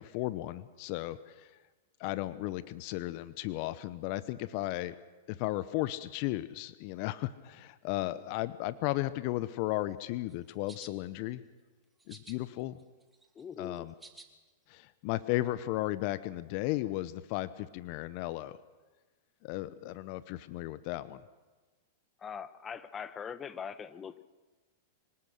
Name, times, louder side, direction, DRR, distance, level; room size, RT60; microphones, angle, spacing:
voice 1, 0.0-1.5 2.0-4.9 5.3-11.4 12.1-12.8 13.6-13.9 14.7-18.6 19.4-21.2, left 17 dB, 50° left, 15 dB, 0.9 m, -35 dB
sound 1, 10.3-10.9 12.0-12.4 12.8-14.3, right 3 dB, 10° right, 2.6 m, -52 dB
voice 2, 13.3-13.9 22.2-24.2, left 7 dB, 20° left, 14 dB, 1.2 m, -42 dB
25.5 x 18.5 x 6.5 m, 1.2 s
hypercardioid pair, 105°, 0 cm